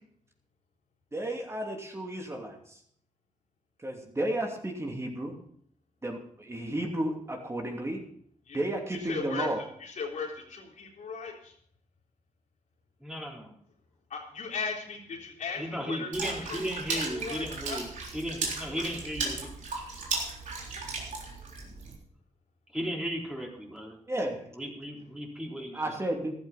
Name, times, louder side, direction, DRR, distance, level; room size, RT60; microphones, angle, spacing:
voice 1, 1.1-2.8 3.8-5.3 6.0-8.0 8.5-9.6 24.1-24.4 25.7-26.3, right 1 dB, 20° right, 1 dB, 2.8 m, -32 dB
voice 2, 9.1-9.5 9.8-11.5 14.1-16.1 16.4-17.8, left 5 dB, 85° left, -1 dB, 3.6 m, -37 dB
voice 3, 13.0-13.5 15.6-19.5 22.7-24.0 24.5-26.0, equal, 5° right, -2 dB, 4.0 m, -35 dB
Water / Splash splatter, 16.1-21.9, right 3 dB, 80° right, 3.8 m, -36 dB
14.0 x 12.5 x 4.2 m, 0.64 s
cardioid pair, 95°, 13 cm